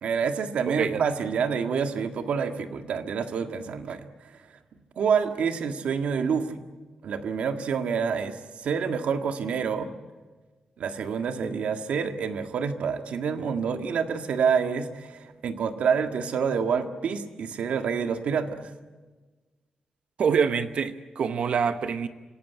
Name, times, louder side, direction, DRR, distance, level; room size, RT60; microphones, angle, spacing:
voice 1, 0.0-4.0 5.0-6.6 7.0-8.4 8.6-9.9 10.8-18.7, right 6 dB, 80° right, 6 dB, 1.7 m, -27 dB
voice 2, 0.7-1.0 20.2-22.1, right 6 dB, 60° right, 10 dB, 0.9 m, -25 dB
27.0 x 17.5 x 9.3 m, 1.3 s
wide cardioid pair, 170°, 2 cm